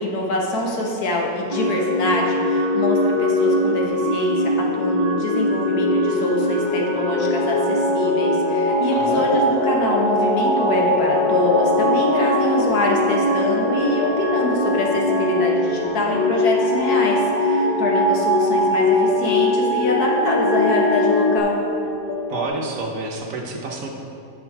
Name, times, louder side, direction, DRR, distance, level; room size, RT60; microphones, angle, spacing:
voice 1, 0.0-21.6, left 1 dB, 70° left, -1 dB, 1.6 m, -24 dB
sound 1, 1.5-21.4, left 1 dB, 30° right, 0.9 m, -21 dB
sound 2, 8.7-22.5, left 3 dB, 90° left, 1.3 m, -31 dB
voice 2, 8.9-9.2 22.3-23.9, right 2 dB, 60° right, 1 dB, 1.1 m, -29 dB
9.3 x 5.4 x 4.7 m, 2.6 s
omnidirectional pair, 1.7 m